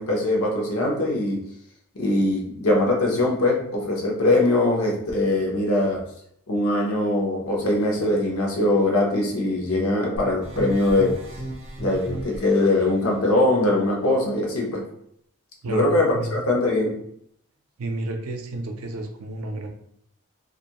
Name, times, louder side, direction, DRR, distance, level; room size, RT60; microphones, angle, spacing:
voice 1, 0.0-1.4 1.9-6.0 6.5-11.1 11.8-14.8 15.7-16.9, left 2 dB, 90° left, -1 dB, 0.8 m, -22 dB
sound 1, 10.2-12.9, right 1 dB, 30° right, 0.5 m, -34 dB
voice 2, 15.6-16.3 17.8-19.7, right 1 dB, 85° right, 5 dB, 0.4 m, -31 dB
2.4 x 2.2 x 2.9 m, 0.68 s
head